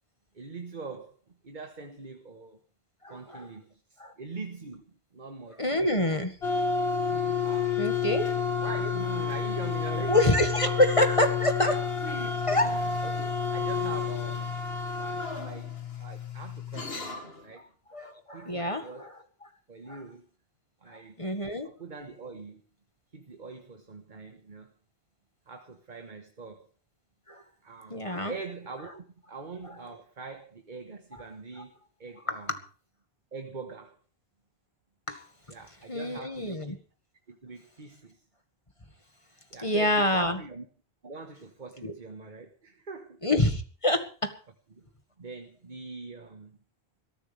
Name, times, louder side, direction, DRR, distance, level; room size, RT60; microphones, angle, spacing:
voice 1, 0.3-2.6 3.1-5.7 7.4-7.8 8.6-10.2 10.6-10.8 12.0-14.5 14.9-15.7 16.0-17.6 18.3-19.1 19.7-20.3 20.8-21.2 21.6-22.6 23.1-24.7 25.5-26.7 27.6-32.5 33.3-34.0 35.5-36.8 37.3-38.2 39.5-40.6 41.0-43.2 44.7-44.9 45.2-46.6, right 4 dB, 50° right, 1.6 m, -42 dB
voice 2, 3.0-3.5 4.0-4.1 5.6-6.4 7.8-8.3 10.1-10.7 11.0-12.1 12.5-12.7 17.5-17.6 17.9-19.1 19.9-20.0 20.9-21.7 27.3-27.4 27.9-28.3 31.6-31.7 32.3-32.4 35.1-35.3 35.9-36.8 39.6-40.4 41.8-41.9 43.2-44.3, left 1 dB, 30° left, 2.0 m, -27 dB
sound 1, 6.4-17.4, left 6 dB, 75° left, 2.3 m, -30 dB
21.5 x 14.5 x 3.5 m
omnidirectional pair, 1.0 m